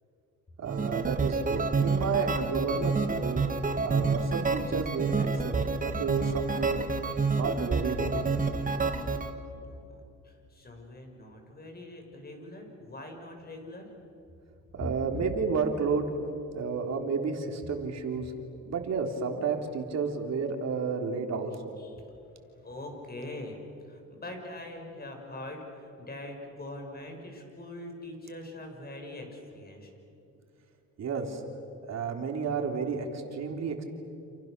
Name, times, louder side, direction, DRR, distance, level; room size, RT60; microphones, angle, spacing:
voice 1, 0.6-3.4 3.8-6.9 7.3-8.4 14.7-16.1 16.5-18.3 18.7-21.7 31.0-31.4 31.9-33.8, right 5 dB, 60° right, 3 dB, 3.6 m, -31 dB
sound 1, 0.7-9.3, right 4 dB, 25° right, 1.9 m, -29 dB
voice 2, 9.5-13.9 14.8-14.9 21.8-22.0 22.5-23.6 23.8-29.9, left 1 dB, 30° left, 3 dB, 6.8 m, -43 dB
29.0 x 28.5 x 6.8 m, 2.7 s
cardioid pair, 90°, 30 cm